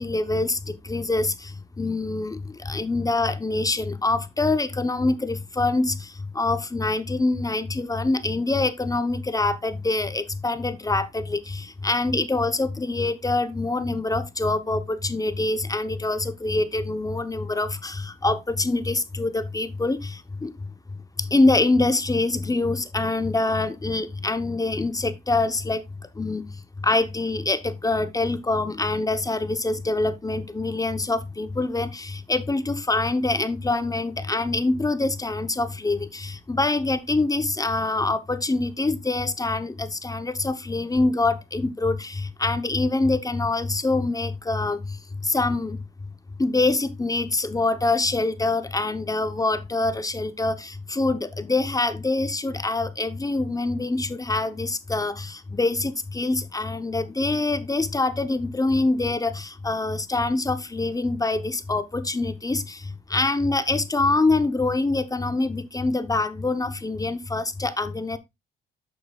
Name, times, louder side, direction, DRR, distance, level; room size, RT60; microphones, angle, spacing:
voice 1, 0.0-25.8 26.1-45.8 46.4-68.2, left 2 dB, 15° left, 0.8 m, -25 dB
8.7 x 6.0 x 2.4 m
cardioid pair, 90°, 20 cm